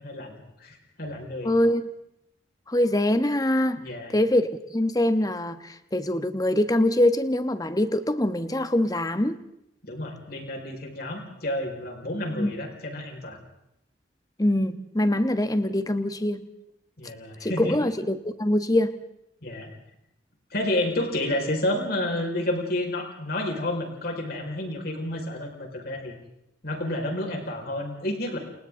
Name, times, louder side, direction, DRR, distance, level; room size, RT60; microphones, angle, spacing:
voice 1, 0.0-1.5 3.8-4.1 9.8-13.4 17.0-17.8 19.4-19.7 20.5-26.1 26.6-28.4, left 1 dB, 55° left, 2 dB, 5.1 m, -30 dB
voice 2, 1.4-1.8 2.7-3.8 4.1-9.4 12.3-12.5 14.4-16.4 17.4-18.9, left 1 dB, 20° left, 10 dB, 1.2 m, -24 dB
30.0 x 29.0 x 3.8 m, 0.80 s
head